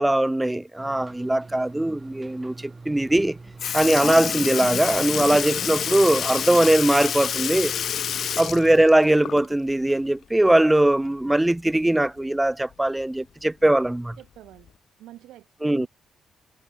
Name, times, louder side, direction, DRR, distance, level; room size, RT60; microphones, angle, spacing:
voice 1, 0.0-3.4 3.7-7.7 8.4-14.2 15.6-15.9, right 1 dB, 10° right, 1.1 m, -21 dB
sound 1, 0.8-8.9, right 3 dB, 30° right, 2.2 m, -43 dB
Sink (filling or washing) / Liquid, 3.2-3.3 3.6-9.7 10.1-10.2 11.7-11.8 12.7-12.8 13.6-13.9 14.7-14.8, left 9 dB, 65° left, 0.6 m, -28 dB
voice 2, 8.4-8.8 14.2-14.7 15.0-15.9, right 14 dB, 90° right, 5.8 m, -46 dB
cardioid pair, 75°, 0 cm